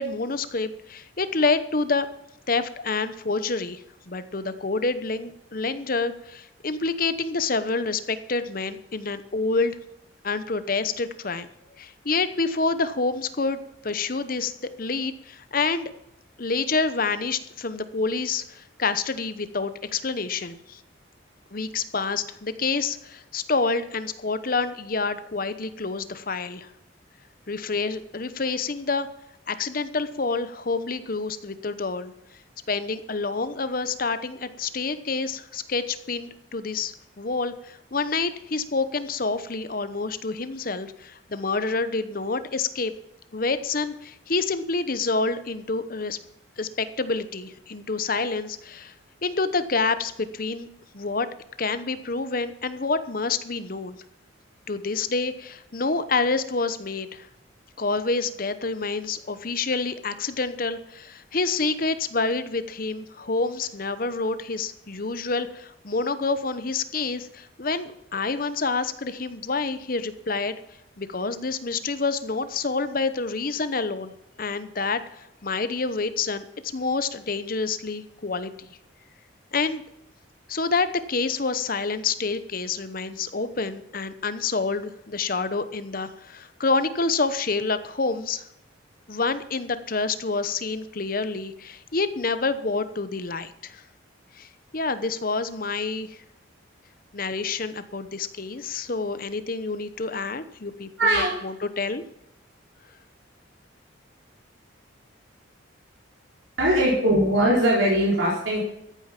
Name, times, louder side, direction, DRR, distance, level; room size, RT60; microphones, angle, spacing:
voice 1, 0.0-2.1 2.5-9.8 10.2-11.5 11.8-15.9 16.4-20.8 21.5-26.7 27.5-29.1 29.5-32.1 32.7-42.9 43.3-46.2 46.6-48.9 49.2-50.7 50.9-51.3 51.6-54.0 54.7-57.3 57.8-70.6 71.0-74.1 74.4-78.5 79.5-79.8 80.5-88.4 89.1-93.8 94.3-96.2 97.1-102.0, left 4 dB, 45° left, 12 dB, 0.9 m, -28 dB
voice 2, 101.0-101.3 106.6-108.6, right 1 dB, 75° right, -4 dB, 4.2 m, -20 dB
14.0 x 8.9 x 5.9 m, 0.83 s
head